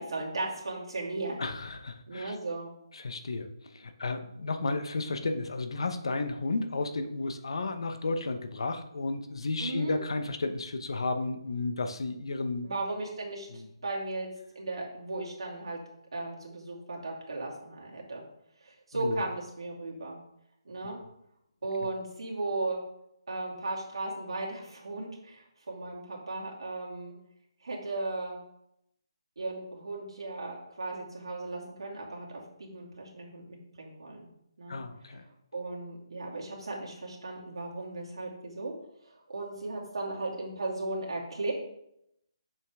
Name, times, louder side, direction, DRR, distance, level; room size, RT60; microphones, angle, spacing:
voice 1, 0.0-1.4 2.1-2.7 9.6-10.0 12.6-14.3 14.5-15.8 16.1-18.2 18.6-20.2 20.6-21.0 21.6-22.8 23.3-27.1 27.6-28.4 29.4-34.3 34.6-34.8 35.5-38.7 39.0-41.5, right 2 dB, 75° right, -3 dB, 2.5 m, -36 dB
voice 2, 1.4-2.4 2.9-12.7 13.5-13.7 18.9-19.2 34.7-35.2, left 3 dB, 70° left, 8 dB, 0.8 m, -33 dB
7.0 x 5.5 x 3.5 m, 0.78 s
hypercardioid pair, 165°, 3 cm